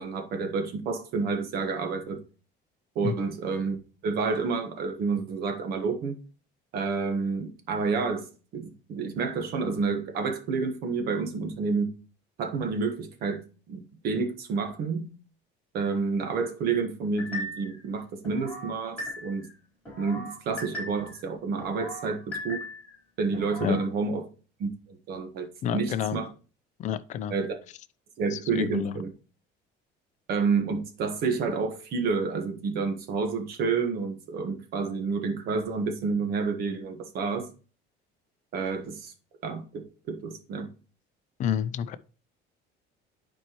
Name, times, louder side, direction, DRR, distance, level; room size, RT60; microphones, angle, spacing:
voice 1, 0.0-2.2 2.9-3.8 4.0-6.2 6.7-8.3 8.5-12.0 12.4-15.1 15.7-19.5 20.0-22.7 23.2-24.3 24.6-26.3 27.3-27.6 28.2-29.1 30.3-37.5 38.5-39.1 39.4-40.7, right 4 dB, 55° right, 1.4 m, -29 dB
sound 1, 17.2-17.8 18.2-19.5 19.8-21.2 21.6-22.9 23.3-23.8, left 1 dB, 5° left, 4.2 m, -38 dB
voice 2, 25.6-26.2 26.8-27.3 28.3-28.9 41.4-42.0, left 9 dB, 40° left, 0.5 m, -29 dB
11.0 x 4.5 x 3.0 m
cardioid pair, 165°, 19 cm